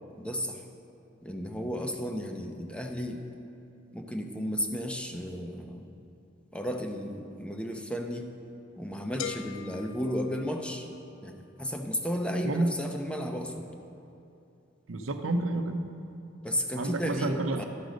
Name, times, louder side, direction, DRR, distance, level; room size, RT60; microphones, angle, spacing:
voice 1, 0.2-0.6 1.2-3.2 3.9-5.9 6.5-8.3 8.8-10.9 11.2-13.6 16.4-17.6, equal, 5° left, 3 dB, 0.6 m, -33 dB
sound 1, 9.2-11.1, left 9 dB, 75° left, 0.4 m, -41 dB
voice 2, 14.9-15.9 16.8-17.6, right 2 dB, 85° right, 6 dB, 0.7 m, -29 dB
12.0 x 5.2 x 6.3 m, 2.7 s
head